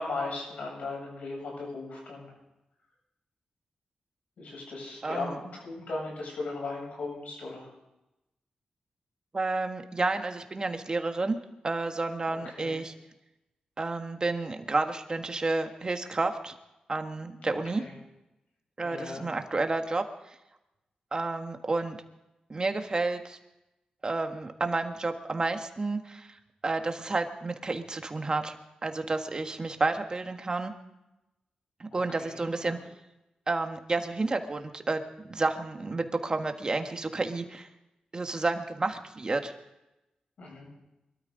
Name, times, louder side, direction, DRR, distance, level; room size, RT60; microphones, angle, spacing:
voice 1, 0.0-2.3 4.4-7.7 12.3-12.8 17.4-17.9 18.8-19.3 31.9-32.8 40.4-40.7, left 3 dB, 75° left, -1 dB, 7.7 m, -37 dB
voice 2, 5.0-5.4 9.3-11.4 11.6-12.9 13.8-16.5 16.9-17.8 18.8-20.0 21.1-22.0 22.5-23.4 24.0-26.3 26.6-28.6 28.8-30.7 31.8-32.8 33.5-37.7 38.1-39.5, right 3 dB, 35° right, 6 dB, 1.6 m, -30 dB
23.0 x 13.0 x 4.0 m, 0.94 s
cardioid pair, 80°, 2 cm